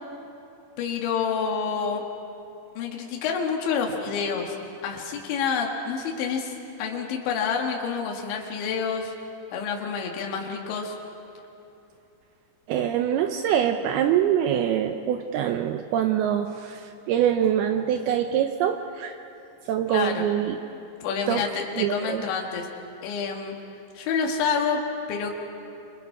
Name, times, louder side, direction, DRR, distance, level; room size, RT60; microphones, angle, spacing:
voice 1, 0.8-2.0 2.8-4.6 4.8-6.5 6.8-9.1 9.5-11.0 19.9-20.3 21.0-22.7 23.0-23.6 24.0-24.8 25.1-25.3, left 6 dB, 80° left, 0 dB, 4.0 m, -28 dB
voice 2, 12.7-19.2 19.7-20.6 21.3-21.4 21.8-22.3, right 9 dB, 80° right, 6 dB, 2.3 m, -24 dB
27.0 x 26.5 x 4.9 m, 2.8 s
omnidirectional pair, 5.1 m